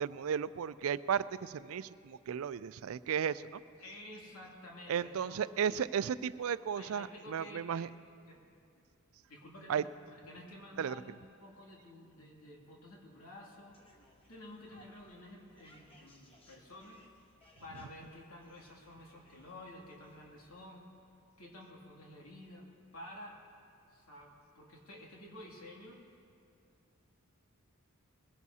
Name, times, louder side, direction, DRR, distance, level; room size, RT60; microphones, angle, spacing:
voice 1, 0.0-3.6 4.9-7.9 9.7-9.8 10.8-10.9, right 8 dB, 75° right, 16 dB, 0.3 m, -34 dB
voice 2, 3.8-5.9 6.7-7.9 8.3-8.4 9.3-13.8 14.3-17.0 17.6-20.9 21.4-23.4 23.8-26.0, left 1 dB, 85° left, -2 dB, 2.6 m, -51 dB
sound 1, 13.7-20.6, equal, 25° left, 1.2 m, -64 dB
21.5 x 16.5 x 2.8 m, 2.4 s
head